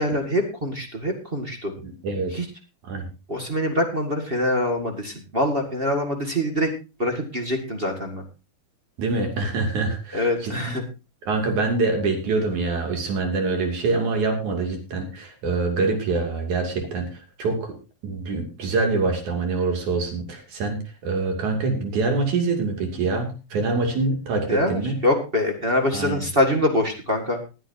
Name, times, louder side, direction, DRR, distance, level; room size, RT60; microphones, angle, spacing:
voice 1, 0.0-1.7 2.3-2.4 3.3-6.7 7.0-8.2 10.1-10.8 24.5-27.4, left 1 dB, 25° right, 4 dB, 1.1 m, -24 dB
voice 2, 1.8-2.3 2.8-3.1 9.0-10.8 11.2-17.8 18.0-25.0 25.9-26.3, right 3 dB, 55° right, 4 dB, 3.9 m, -25 dB
20.0 x 10.5 x 2.8 m, 0.29 s
omnidirectional pair, 4.2 m